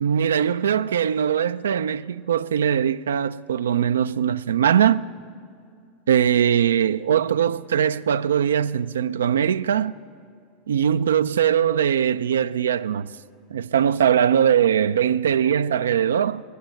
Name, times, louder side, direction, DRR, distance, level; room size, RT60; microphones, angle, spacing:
voice 1, 0.0-5.1 6.1-9.9 10.7-13.1 13.5-16.4, right 9 dB, 85° right, 0.3 m, -21 dB
17.0 x 11.5 x 6.4 m
hypercardioid pair, 95°, 0 cm